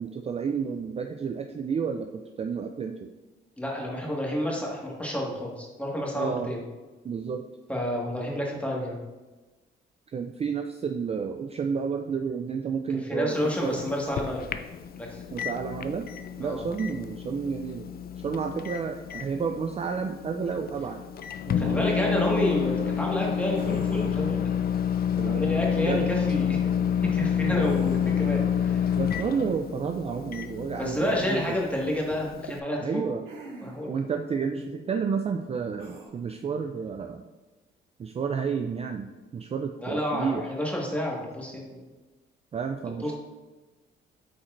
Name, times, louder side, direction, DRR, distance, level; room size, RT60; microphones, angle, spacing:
voice 1, 0.0-3.1 6.2-6.5 7.0-7.4 10.1-13.4 13.6-13.8 15.3-16.1 16.4-17.9 18.2-21.0 21.5-22.1 25.2-26.0 27.4-27.7 29.0-31.6 32.8-33.3 33.9-37.2 38.0-39.1 39.3-40.4 42.5-43.1, right 6 dB, 30° right, 5 dB, 0.4 m, -31 dB
voice 2, 3.6-6.6 7.7-9.0 13.0-14.5 15.0-15.2 16.4-16.6 21.6-24.5 25.3-26.6 27.1-28.9 30.8-32.8 33.6-33.9 39.8-41.9 43.0-43.1, left 1 dB, 5° left, -3 dB, 1.7 m, -29 dB
Microwave oven, 13.3-32.6, left 8 dB, 50° left, 0.4 m, -29 dB
sound 1, 23.5-24.3 27.6-28.4 31.0-31.4 33.3-33.9 35.8-36.1, right 2 dB, 90° right, 1.7 m, -44 dB
8.4 x 4.4 x 2.6 m, 1.2 s
cardioid pair, 90°, 20 cm